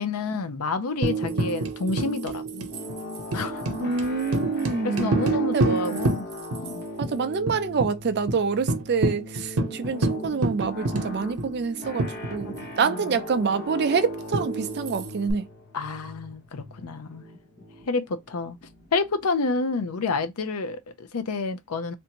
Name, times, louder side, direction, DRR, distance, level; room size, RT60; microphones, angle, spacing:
voice 1, 0.0-2.7 3.3-3.9 4.8-6.9 12.4-13.2 15.7-17.2 17.9-18.6 18.9-21.9, left 3 dB, 85° left, 0.6 m, -29 dB
Tambourine, 1.0-6.7 7.0-7.1 7.5-7.9 8.3-8.4 8.7-12.8 14.3-15.3, right 2 dB, 75° right, 0.8 m, -28 dB
sound 1, 2.7-19.2, left 1 dB, 45° left, 1.3 m, -39 dB
voice 2, 3.8-5.2 5.5-6.1 7.0-15.4, right 5 dB, 50° right, 0.4 m, -27 dB
3.3 x 2.6 x 2.9 m
head